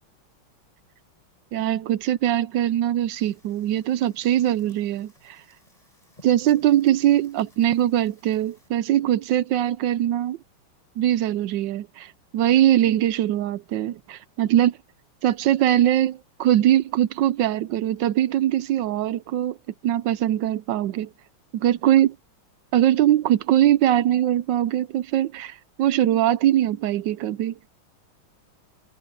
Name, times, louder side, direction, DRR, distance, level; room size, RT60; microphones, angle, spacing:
voice 1, 1.5-5.4 6.2-10.4 11.0-14.8 15.2-19.6 19.8-21.1 21.5-22.2 22.7-27.6, right 12 dB, 75° right, 1.1 m, -21 dB
Fire, 3.1-8.7, equal, 15° left, 5.8 m, -58 dB
omnidirectional pair, 2.4 m